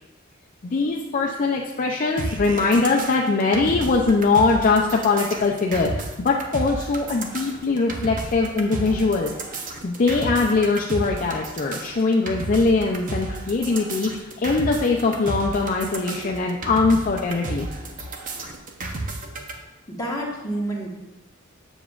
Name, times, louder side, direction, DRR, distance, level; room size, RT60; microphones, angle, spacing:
voice 1, 0.6-9.3 9.8-17.7, left 3 dB, 40° left, 0 dB, 0.4 m, -22 dB
sound 1, 2.2-19.5, right 2 dB, 40° right, 0.7 m, -32 dB
voice 2, 19.9-20.9, right 1 dB, 20° left, -4 dB, 1.3 m, -28 dB
7.1 x 7.0 x 2.4 m, 1.0 s
head